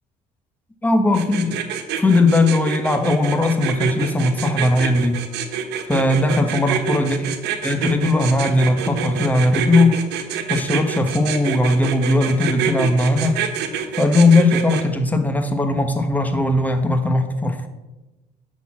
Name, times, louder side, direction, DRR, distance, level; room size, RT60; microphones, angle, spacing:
voice 1, 0.8-1.6 1.9-5.2 5.9-7.3 7.6-10.1 10.5-13.4 14.0-17.7, left 2 dB, 10° left, 6 dB, 1.1 m, -18 dB
sound 1, 1.1-14.8, right 8 dB, 80° right, 1.2 m, -26 dB
6.7 x 6.2 x 7.4 m, 1.1 s
cardioid pair, 110°, 17 cm